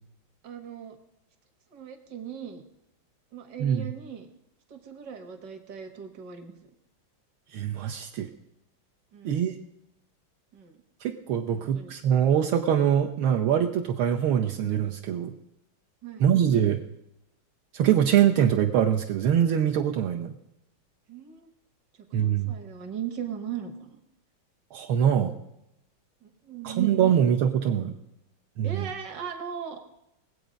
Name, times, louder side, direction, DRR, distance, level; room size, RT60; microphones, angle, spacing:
voice 1, 0.4-1.0 1.7-2.6 3.3-4.3 4.7-6.7 9.1-9.5 10.5-10.8 11.5-11.9 16.0-16.3 21.1-21.5 22.2-24.0 26.2-26.9 28.6-29.8, right 8 dB, 55° right, 6 dB, 1.8 m, -38 dB
voice 2, 7.5-8.3 9.3-9.6 11.0-15.3 16.2-16.8 17.7-20.3 22.1-22.5 24.7-25.3 26.6-27.9 28.6-28.9, right 9 dB, 80° right, 2 dB, 1.6 m, -23 dB
20.5 x 8.0 x 5.1 m, 0.87 s
omnidirectional pair, 2.3 m